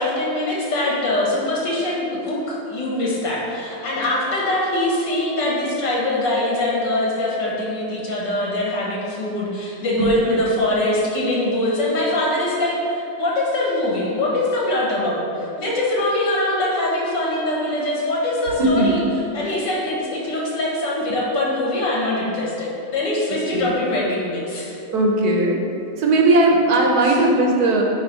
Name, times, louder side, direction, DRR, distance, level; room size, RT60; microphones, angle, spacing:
voice 1, 0.0-19.0 19.3-24.8, left 1 dB, 85° left, -4 dB, 2.1 m, -23 dB
voice 2, 18.6-19.1 19.4-19.6 23.5-23.7 24.9-25.6 26.0-27.8, right 2 dB, 65° right, 0 dB, 1.4 m, -18 dB
9.7 x 3.4 x 4.4 m, 2.7 s
omnidirectional pair, 1.9 m